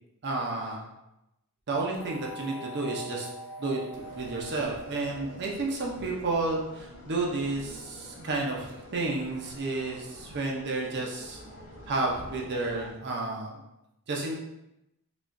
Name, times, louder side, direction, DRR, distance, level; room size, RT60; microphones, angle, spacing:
voice 1, 0.2-0.9 1.7-3.3 3.6-11.4 11.9-13.6 14.1-14.3, right 3 dB, 50° right, -1 dB, 0.6 m, -31 dB
sound 1, 2.0-6.2, right 1 dB, 60° left, 0.9 m, -43 dB
sound 2, 3.9-12.9, left 1 dB, 80° left, 1.2 m, -48 dB
4.9 x 2.4 x 2.5 m, 0.88 s
head